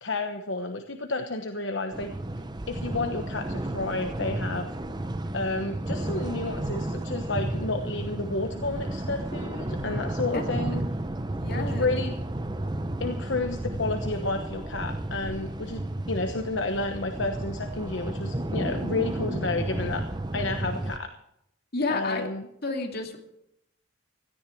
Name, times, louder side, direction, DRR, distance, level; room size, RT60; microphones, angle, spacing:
voice 1, 0.0-2.1 2.7-4.7 5.3-10.8 11.5-12.2 13.0-20.0 20.3-21.1 21.9-22.4, left 2 dB, 65° left, 5 dB, 1.1 m, -31 dB
sound 1, 1.9-21.0, right 1 dB, 20° right, 0.7 m, -32 dB
voice 2, 11.4-11.9 21.7-22.2 22.6-23.2, left 3 dB, 50° left, 2 dB, 2.5 m, -30 dB
17.0 x 13.5 x 4.6 m, 0.77 s
head